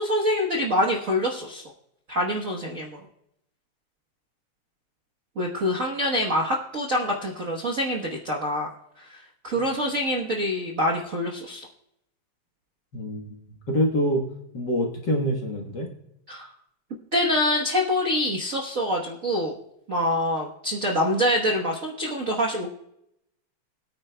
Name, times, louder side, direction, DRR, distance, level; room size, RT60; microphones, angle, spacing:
voice 1, 0.0-1.7 2.1-3.0 5.4-8.7 9.0-11.7 16.3-16.5 17.1-19.5 19.9-22.7, left 1 dB, 85° right, -1 dB, 0.7 m, -25 dB
voice 2, 12.9-14.3 14.5-15.9, equal, 45° left, 0 dB, 1.5 m, -26 dB
22.0 x 9.3 x 2.2 m, 0.79 s
omnidirectional pair, 3.4 m